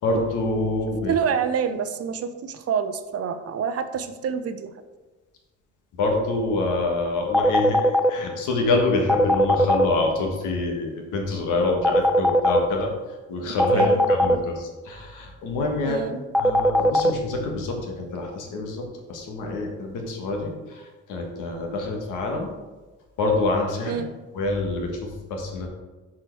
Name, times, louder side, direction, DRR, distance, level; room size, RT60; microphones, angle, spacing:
voice 1, 0.0-1.2 6.0-22.5 23.2-24.0 24.3-25.7, left 2 dB, 85° left, 2 dB, 1.4 m, -26 dB
voice 2, 1.1-4.7 13.5-14.5 15.8-16.2 23.9-24.1, right 7 dB, 55° right, 10 dB, 0.6 m, -27 dB
sound 1, 7.3-8.1 9.1-9.8 11.8-12.6 13.6-14.3 16.3-17.1, equal, ahead, 0.3 m, -18 dB
6.0 x 4.8 x 4.6 m, 1.2 s
cardioid pair, 90°, 30 cm